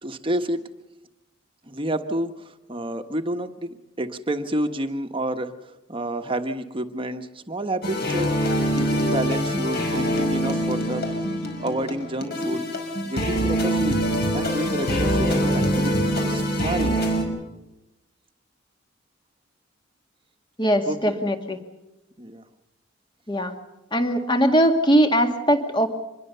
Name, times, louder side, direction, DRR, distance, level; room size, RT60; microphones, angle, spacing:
voice 1, 0.0-0.6 1.7-3.7 4.0-8.3 8.7-11.1 11.6-12.7 13.0-14.0 14.3-17.1 20.9-21.1 22.2-22.4, right 1 dB, 25° right, 8 dB, 1.3 m, -29 dB
sound 1, 7.8-17.2, equal, 55° left, 5.2 m, -24 dB
voice 2, 20.6-21.6 23.3-23.5 23.9-25.9, equal, 25° left, 5 dB, 2.1 m, -20 dB
25.5 x 21.5 x 6.9 m, 0.97 s
head